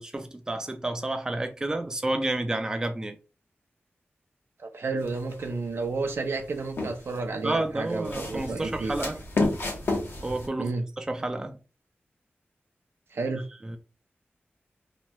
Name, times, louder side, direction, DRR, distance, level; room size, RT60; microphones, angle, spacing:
voice 1, 0.0-3.2 7.4-9.2 10.2-11.6 13.6-13.8, right 2 dB, 15° right, 0.3 m, -30 dB
voice 2, 4.6-9.0 10.6-10.8 13.1-13.4, right 3 dB, 75° right, 0.5 m, -31 dB
sound 1, 5.0-5.5 6.1-7.2 7.9-10.5, left 2 dB, 70° left, 0.9 m, -31 dB
2.9 x 2.2 x 2.9 m
wide cardioid pair, 100°, 4 cm